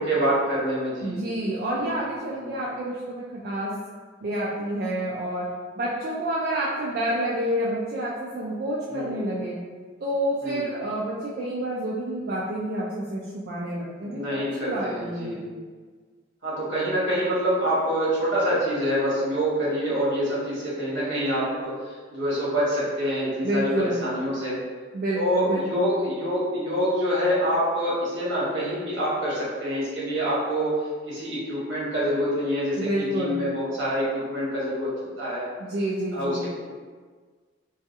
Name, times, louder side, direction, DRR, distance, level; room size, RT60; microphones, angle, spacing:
voice 1, 0.0-1.2 1.7-2.0 2.3-2.6 8.9-9.2 10.4-10.7 14.0-15.4 16.4-24.6 25.1-30.8 31.1-35.5 36.1-36.5, equal, 85° right, -8 dB, 1.1 m, -26 dB
voice 2, 1.0-3.7 4.2-5.5 5.8-9.6 10.0-15.4 23.4-24.0 24.9-25.9 32.8-33.4 35.6-36.5, right 1 dB, 55° right, -6 dB, 0.3 m, -29 dB
2.7 x 2.3 x 2.4 m, 1.5 s
head